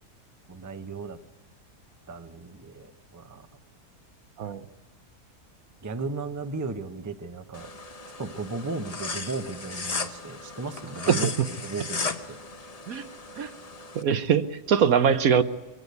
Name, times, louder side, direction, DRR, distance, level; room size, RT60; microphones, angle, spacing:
voice 1, 0.5-1.2 2.1-3.5 5.8-7.7 8.2-11.3 11.6-12.4, right 3 dB, 15° right, 8 dB, 0.7 m, -35 dB
sound 1, 7.5-14.0, left 4 dB, 30° left, 0.8 m, -36 dB
voice 2, 13.9-15.4, right 7 dB, 65° right, 11 dB, 1.2 m, -22 dB
24.0 x 16.0 x 8.2 m, 1.2 s
omnidirectional pair, 1.7 m